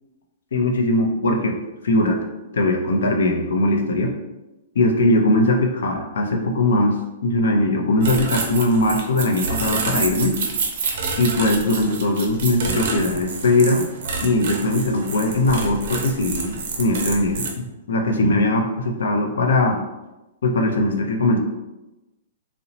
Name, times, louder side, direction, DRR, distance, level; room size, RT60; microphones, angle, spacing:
voice 1, 0.5-2.2 2.5-4.1 4.8-10.4 11.2-13.9 14.2-19.8 20.4-21.4, left 1 dB, 85° left, 3 dB, 0.5 m, -20 dB
sound 1, 8.0-17.5, right 4 dB, 55° right, 0.5 m, -28 dB
2.7 x 2.0 x 2.9 m, 1.0 s
hypercardioid pair, 160°, 0 cm